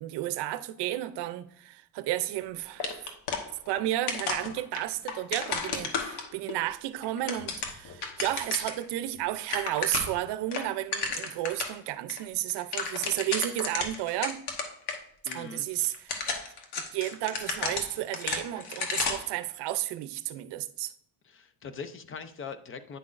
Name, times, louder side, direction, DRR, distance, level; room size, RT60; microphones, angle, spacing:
voice 1, 0.0-3.2 3.7-14.4 15.3-16.4 16.8-20.9, right 14 dB, 70° right, 0.6 m, -32 dB
sound 1, 2.8-6.5 7.0-8.8 9.1-9.2 9.4-10.2 10.5-11.8 12.1-12.2 12.5-15.0 15.3-15.4 15.9-19.3, left 4 dB, 70° left, 1.2 m, -33 dB
voice 2, 15.2-16.0 21.3-23.0, left 5 dB, 30° left, 0.6 m, -42 dB
9.6 x 5.8 x 2.5 m
cardioid pair, 125°, 42 cm